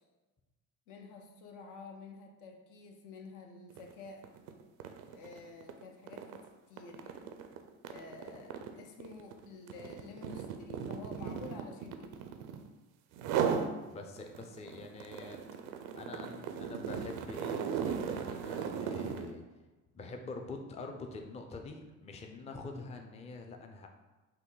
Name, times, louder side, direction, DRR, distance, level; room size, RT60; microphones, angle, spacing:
voice 1, 0.9-4.3 5.1-7.3 7.9-12.2 13.2-13.8 15.2-15.3, left 4 dB, 75° left, 3 dB, 0.8 m, -50 dB
sound 1, 3.7-3.9 4.2-12.7 13.1-13.7 14.2-19.3, right 7 dB, 85° right, 0.5 m, -37 dB
voice 2, 13.9-15.4 16.0-19.4 19.9-23.9, left 3 dB, 20° left, 3 dB, 0.4 m, -45 dB
5.8 x 2.2 x 3.8 m, 1.2 s
cardioid pair, 110°, 31 cm